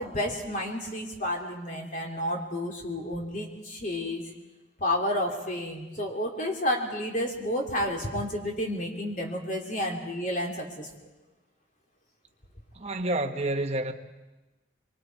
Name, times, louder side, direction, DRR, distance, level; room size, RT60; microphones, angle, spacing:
voice 1, 0.0-4.2 4.8-10.9, left 1 dB, 45° left, 3.2 m, -31 dB
voice 2, 12.7-13.9, right 1 dB, 35° right, 1.2 m, -29 dB
25.0 x 25.0 x 4.7 m
head